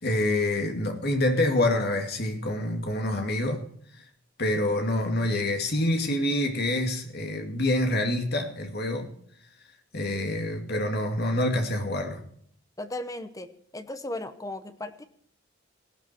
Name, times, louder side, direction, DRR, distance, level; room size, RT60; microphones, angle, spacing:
voice 1, 0.0-3.6 4.0-4.1 4.4-9.1 9.9-12.2, left 1 dB, 55° left, 2.5 m, -26 dB
voice 2, 12.8-13.5 13.7-15.0, left 1 dB, 20° left, 1.0 m, -36 dB
16.5 x 12.5 x 4.5 m
head